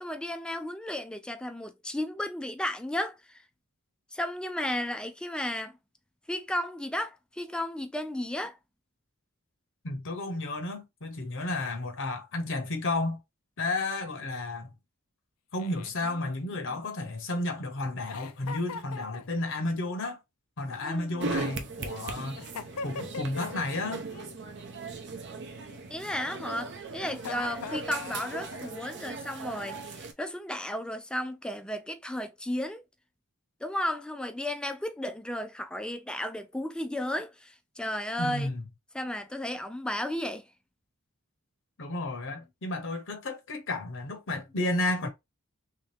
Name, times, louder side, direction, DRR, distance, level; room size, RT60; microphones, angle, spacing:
voice 1, 0.0-3.4 4.1-5.8 6.3-8.6 20.8-21.2 25.9-32.8 33.6-38.5 38.9-40.5, left 1 dB, 5° left, 0.4 m, -34 dB
voice 2, 9.8-13.2 13.6-14.7 15.5-20.2 20.6-22.4 22.8-24.0 38.2-38.6 41.8-45.1, left 2 dB, 60° left, 0.8 m, -32 dB
Giggle, 15.6-17.4 18.1-19.7 20.7-21.7 22.4-23.6 23.8-24.4 25.6-26.3 27.0-29.1, left 5 dB, 90° left, 0.4 m, -43 dB
sound 1, 21.2-30.1, right 3 dB, 55° right, 0.7 m, -38 dB
3.3 x 2.8 x 3.3 m
head